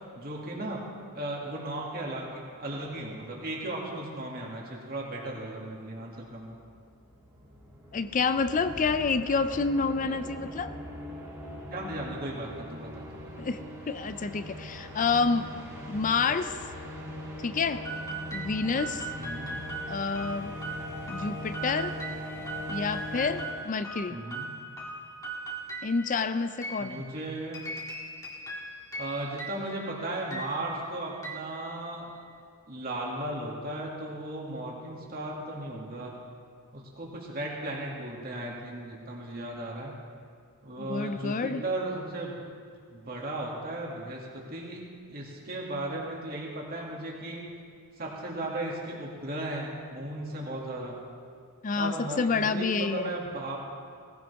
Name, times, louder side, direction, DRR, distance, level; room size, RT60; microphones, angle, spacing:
voice 1, 0.1-0.8 1.1-6.6 9.9-10.2 11.7-13.3 19.2-19.6 24.1-24.5 26.8-27.6 29.0-32.1 32.7-36.1 36.7-39.9 40.6-47.4 48.0-51.0 51.7-53.6, right 1 dB, 45° right, -3 dB, 2.4 m, -36 dB
sound 1, 6.5-24.0, left 1 dB, 15° right, 2.8 m, -41 dB
voice 2, 7.9-10.7 13.4-13.6 13.9-15.5 15.9-16.5 17.4-17.8 18.3-19.0 19.9-20.5 21.1-21.9 22.7-24.2 25.8-27.0 40.8-41.6 51.6-53.1, left 4 dB, 35° left, 11 dB, 0.5 m, -28 dB
sound 2, 17.8-32.3, right 2 dB, 15° left, 1.8 m, -40 dB
18.0 x 15.5 x 3.6 m, 2.1 s
head